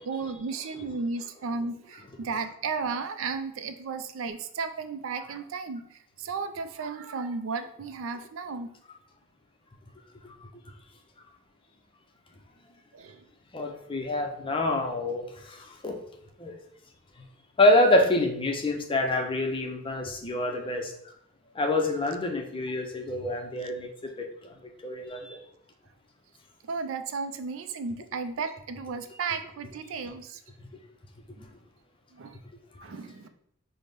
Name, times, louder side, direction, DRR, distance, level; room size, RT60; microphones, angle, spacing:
voice 1, 0.0-8.7 12.9-13.3 26.6-30.4 32.1-32.4 32.8-33.3, right 4 dB, 70° right, 9 dB, 0.4 m, -34 dB
voice 2, 13.5-15.2 15.5-15.6 15.8-15.9 16.4-16.5 17.6-20.9 21.6-23.9 24.2-24.3 24.8-25.4, left 1 dB, 25° left, 3 dB, 0.5 m, -26 dB
5.6 x 2.1 x 3.3 m, 0.71 s
head